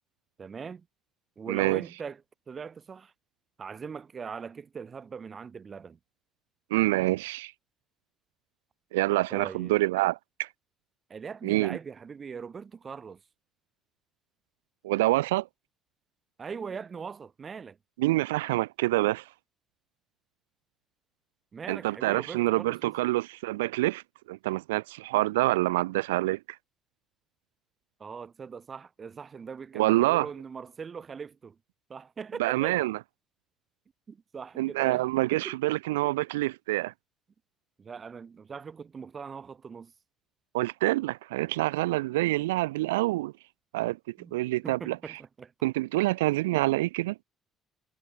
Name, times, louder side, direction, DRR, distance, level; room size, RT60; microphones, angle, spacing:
voice 1, 0.4-0.9 1.4-3.1 3.6-6.0 9.3-9.8 11.1-13.2 16.4-17.8 21.5-22.9 28.0-31.6 31.9-32.8 34.1-35.0 35.3-35.7 37.8-39.9 44.2-44.4 44.6-45.5, right 6 dB, 40° right, 3.2 m, -41 dB
voice 2, 1.5-1.8 6.7-7.5 8.9-10.5 11.4-11.8 14.8-15.5 18.0-19.2 21.7-24.0 24.3-26.4 29.7-30.3 32.4-33.0 34.6-36.9 40.5-43.3 43.7-44.0 44.3-45.0 45.6-47.2, right 18 dB, 85° right, 0.3 m, -26 dB
hypercardioid pair, 50°, 0 cm